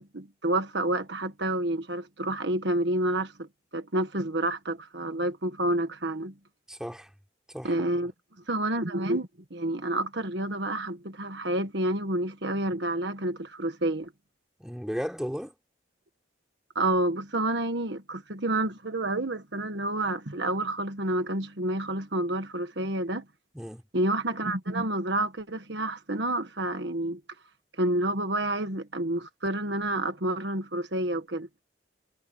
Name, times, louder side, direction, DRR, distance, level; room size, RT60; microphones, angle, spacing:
voice 1, 0.0-3.5 3.7-6.3 7.6-8.1 8.5-14.1 16.7-23.2 23.9-27.2 27.8-31.5, right 1 dB, 60° right, 1.6 m, -29 dB
voice 2, 6.7-7.1 7.5-7.7 14.6-15.5 23.5-23.8, equal, 5° right, 3.9 m, -35 dB
head